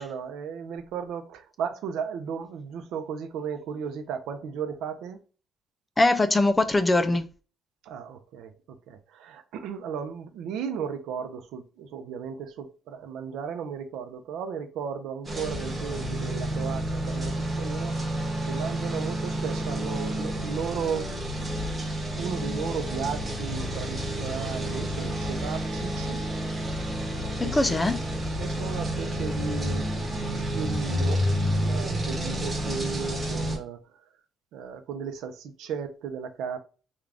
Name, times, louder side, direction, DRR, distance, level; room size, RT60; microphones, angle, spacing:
voice 1, 0.0-5.2 7.8-18.0 18.5-21.2 22.2-26.2 27.4-27.7 28.4-29.9 30.3-31.3 31.5-34.0 34.5-36.6, right 7 dB, 90° right, 0.5 m, -35 dB
voice 2, 6.0-7.3 27.4-28.0, left 2 dB, 15° left, 0.3 m, -22 dB
sound 1, 15.2-33.6, equal, 15° right, 1.2 m, -30 dB
3.7 x 2.3 x 3.4 m
cardioid pair, 165°, 0 cm